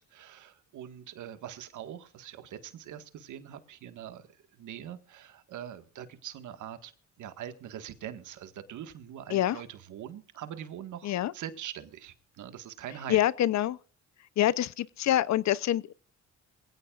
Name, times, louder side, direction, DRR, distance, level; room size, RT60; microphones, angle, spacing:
voice 1, 0.1-6.9 7.2-13.2, right 10 dB, 75° right, 1.7 m, -43 dB
voice 2, 13.1-13.8 14.4-15.9, left 12 dB, 65° left, 0.7 m, -26 dB
23.0 x 16.5 x 2.5 m
cardioid pair, 90°, 30 cm